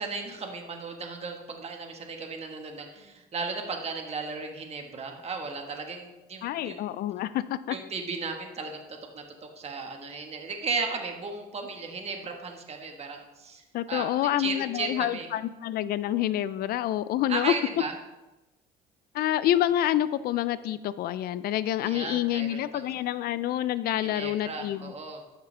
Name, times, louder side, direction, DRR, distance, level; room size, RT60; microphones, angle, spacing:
voice 1, 0.0-6.9 7.7-8.8 9.1-9.2 9.6-15.3 17.3-17.9 21.8-22.9 24.0-25.2, right 4 dB, 40° right, 3 dB, 1.4 m, -35 dB
voice 2, 6.4-7.8 13.7-17.5 19.1-24.9, left 12 dB, 65° left, 16 dB, 0.4 m, -27 dB
13.0 x 5.9 x 3.4 m, 1.1 s
cardioid pair, 110°, 17 cm